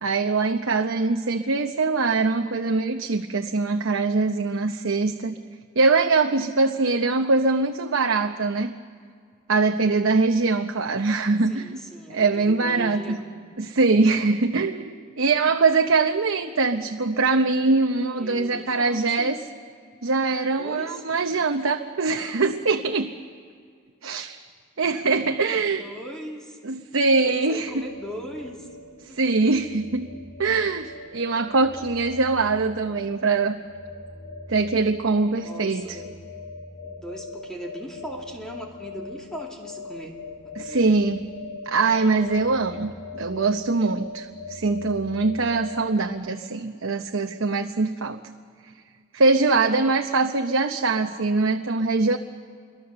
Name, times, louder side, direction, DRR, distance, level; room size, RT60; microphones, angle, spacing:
voice 1, 0.0-5.3 5.8-8.7 9.5-11.8 12.1-13.2 13.6-19.4 20.0-23.1 24.0-24.4 24.8-25.8 26.6-27.7 29.1-30.1 30.4-33.6 34.5-36.0 40.6-41.2 41.7-48.2 49.1-52.2, right 3 dB, 70° right, 5 dB, 0.8 m, -22 dB
voice 2, 11.5-13.2 18.1-19.4 20.6-21.4 21.7-21.8 25.8-26.6 27.2-28.7 29.1-29.2 35.4-36.1 36.8-40.2 40.6-41.0, equal, 5° left, -1 dB, 2.6 m, -39 dB
sound 1, 27.7-46.1, left 3 dB, 80° left, 3.5 m, -41 dB
27.5 x 23.5 x 6.8 m, 2.1 s
head